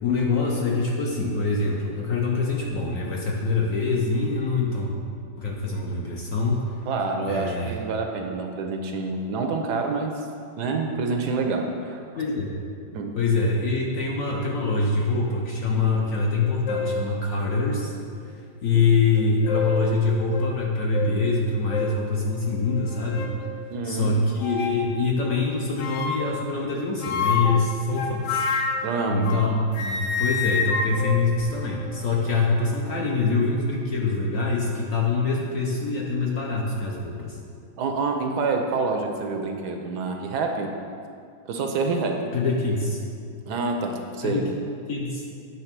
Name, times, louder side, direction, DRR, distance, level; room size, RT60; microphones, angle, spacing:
voice 1, 0.0-4.9 5.4-6.8 7.3-7.7 12.2-12.6 13.2-17.9 18.6-23.3 23.8-28.5 29.1-37.4 42.3-43.0 44.2-44.4 44.9-45.2, left 3 dB, 60° left, -2 dB, 0.9 m, -24 dB
voice 2, 6.9-10.3 10.6-12.0 12.9-13.1 18.7-18.8 23.7-24.2 28.8-29.4 37.8-40.7 41.5-42.3 43.5-44.4, right 4 dB, 70° right, 3 dB, 1.1 m, -27 dB
sound 1, 16.2-16.3 16.7-17.1 17.8-17.9 19.2-19.9 20.3-20.5 20.9-21.1 21.7-22.0 22.7-23.4 24.4-24.8 25.8-26.4 27.0-29.5 29.7-32.1, left 4 dB, 80° left, 1.4 m, -28 dB
8.9 x 3.5 x 5.9 m, 2.4 s
omnidirectional pair, 2.0 m